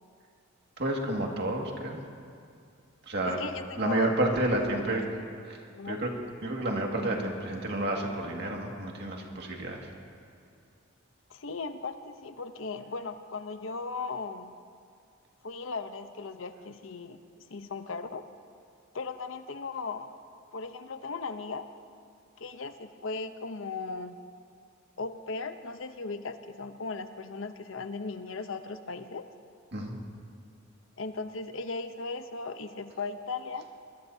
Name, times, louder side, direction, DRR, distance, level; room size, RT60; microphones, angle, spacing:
voice 1, 0.8-2.0 3.1-3.4 3.8-5.0 5.5-5.6 5.9-6.1 6.4-9.9 29.7-30.0, right 1 dB, 55° right, 0 dB, 2.0 m, -30 dB
voice 2, 3.2-4.3 4.7-4.8 5.7-6.0 11.3-14.5 15.4-18.3 18.9-20.1 20.5-21.7 22.4-24.2 25.0-29.3 31.0-33.7, left 4 dB, 75° left, 9 dB, 0.8 m, -37 dB
23.0 x 21.0 x 2.8 m, 2.3 s
head